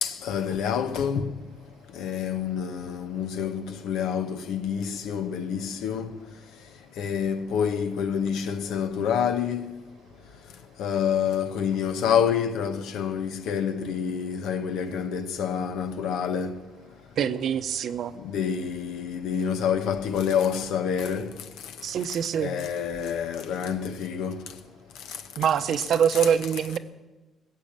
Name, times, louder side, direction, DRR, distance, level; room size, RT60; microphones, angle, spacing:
voice 1, 0.0-1.3 2.0-6.1 7.0-9.7 10.8-16.6 18.2-21.3 22.4-24.5, left 7 dB, 90° left, 1.1 m, -27 dB
voice 2, 17.2-18.1 21.8-22.5 25.4-26.8, right 8 dB, 70° right, 0.9 m, -24 dB
19.5 x 7.5 x 8.9 m
cardioid pair, 90°, 0 cm